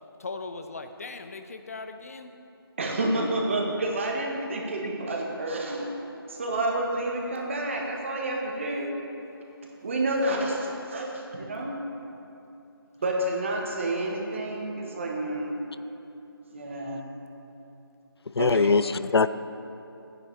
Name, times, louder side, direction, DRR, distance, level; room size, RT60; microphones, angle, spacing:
voice 1, 0.2-2.3 18.5-18.6, left 3 dB, 40° left, 8 dB, 0.6 m, -39 dB
voice 2, 2.8-8.9 9.8-11.7 13.0-15.6 16.5-17.0 18.4-18.7, right 1 dB, 30° right, 0 dB, 1.1 m, -29 dB
voice 3, 18.4-19.3, left 4 dB, 90° left, 14 dB, 0.4 m, -21 dB
12.0 x 9.5 x 3.2 m, 2.8 s
figure-of-eight pair, 165°, 13 cm